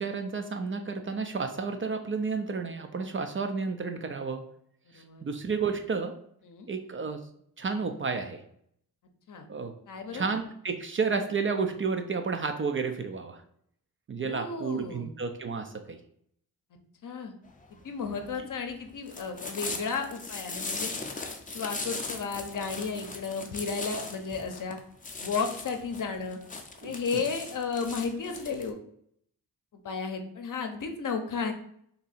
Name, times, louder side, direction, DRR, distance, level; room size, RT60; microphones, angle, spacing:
voice 1, 0.0-4.4 4.9-6.2 6.7-7.2 7.6-8.4 9.5-9.7 10.1-13.4 14.1-16.0 26.8-27.2, right 5 dB, 35° right, 6 dB, 0.4 m, -31 dB
voice 2, 4.9-5.3 6.4-6.7 9.3-9.5 9.9-10.2 14.2-15.1 17.0-17.3 17.8-20.9 21.5-24.8 25.2-26.4 26.8-28.8 29.8-31.5, left 5 dB, 55° left, 5 dB, 0.7 m, -33 dB
sound 1, 17.5-28.7, left 3 dB, 20° left, 0.5 m, -39 dB
2.8 x 2.7 x 4.0 m, 0.68 s
cardioid pair, 75°, 38 cm